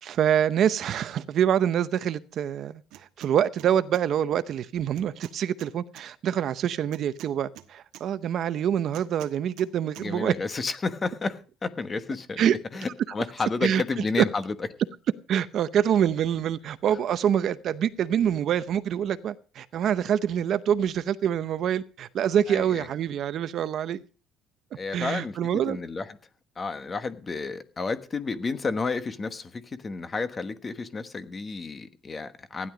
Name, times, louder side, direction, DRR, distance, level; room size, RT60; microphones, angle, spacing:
voice 1, 0.0-10.3 12.4-12.6 13.6-13.8 14.2-14.3 15.3-24.0 24.9-25.8, right 9 dB, 45° right, 0.7 m, -25 dB
sound 1, 2.9-3.3 3.6-4.0 4.9-6.0 6.9-8.0 8.9-9.7 9.9-10.1, right 13 dB, 70° right, 1.3 m, -47 dB
voice 2, 10.0-14.5 22.5-22.9 24.8-25.4 25.7-26.1 26.6-32.7, left 4 dB, 20° left, 1.2 m, -31 dB
15.5 x 11.0 x 4.9 m
cardioid pair, 160°, 0 cm